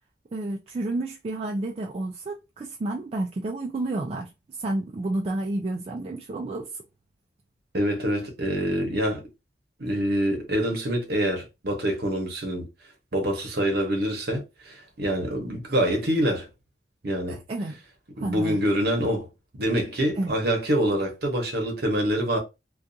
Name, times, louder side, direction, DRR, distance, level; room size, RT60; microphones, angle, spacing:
voice 1, 0.3-6.7 17.3-17.8 18.2-18.6 20.1-20.4, right 2 dB, 35° right, 0.3 m, -30 dB
voice 2, 7.7-9.2 9.8-12.7 13.1-16.5 17.0-17.4 18.2-19.3 19.6-22.4, equal, 60° right, 0.9 m, -25 dB
2.4 x 2.3 x 2.6 m
head